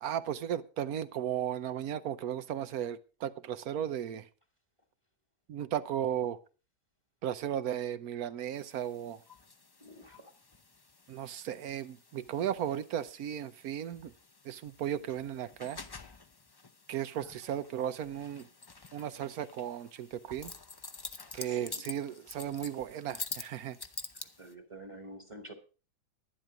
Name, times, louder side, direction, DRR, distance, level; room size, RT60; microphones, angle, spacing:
voice 1, 0.0-4.2 5.5-6.4 7.2-9.2 11.1-14.1 14.4-15.8 16.9-18.5 18.9-20.5 21.3-23.8, right 10 dB, 75° right, 1.2 m, -35 dB
sound 1, 8.5-24.5, left 3 dB, 35° left, 0.4 m, -48 dB
voice 2, 9.8-10.3 21.3-21.8 24.4-25.5, right 1 dB, 20° right, 1.4 m, -48 dB
11.0 x 10.5 x 4.9 m
omnidirectional pair, 1.6 m